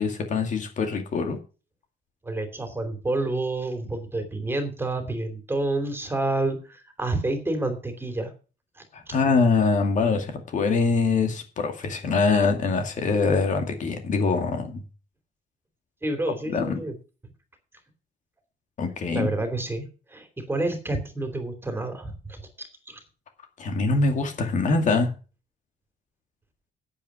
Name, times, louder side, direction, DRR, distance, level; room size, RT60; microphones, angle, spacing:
voice 1, 0.0-1.4 8.9-14.8 16.5-16.8 18.8-19.3 23.6-25.1, left 4 dB, 45° left, 5 dB, 2.2 m, -23 dB
voice 2, 2.2-8.3 8.8-9.2 16.0-16.9 19.1-23.0, right 2 dB, 15° right, 6 dB, 2.9 m, -29 dB
8.9 x 8.6 x 6.1 m, 0.35 s
cardioid pair, 110°, 17 cm